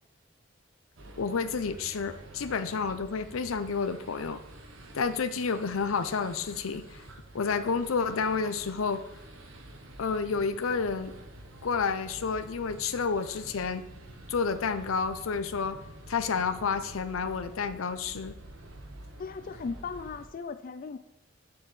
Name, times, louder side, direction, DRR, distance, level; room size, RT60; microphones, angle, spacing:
sound 1, 1.0-20.3, right 1 dB, 75° right, 1.0 m, -48 dB
voice 1, 1.2-4.4 4.9-7.0 7.3-9.0 10.0-11.1 11.6-13.8 14.3-15.8 16.1-18.4, left 5 dB, 85° left, 11 dB, 0.6 m, -30 dB
voice 2, 19.2-21.0, left 4 dB, 45° left, 9 dB, 0.3 m, -37 dB
7.8 x 7.1 x 3.2 m, 0.96 s
head